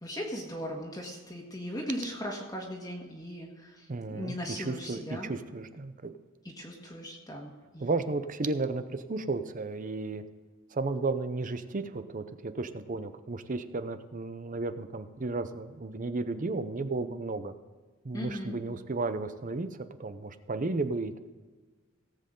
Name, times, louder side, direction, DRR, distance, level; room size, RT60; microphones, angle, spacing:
voice 1, 0.0-5.3 6.6-7.9 18.1-18.6, equal, 15° left, -2 dB, 1.6 m, -38 dB
voice 2, 3.9-6.1 7.8-10.2 10.7-17.5 18.0-21.2, right 3 dB, 35° right, 11 dB, 0.6 m, -33 dB
18.0 x 7.8 x 3.8 m, 1.4 s
head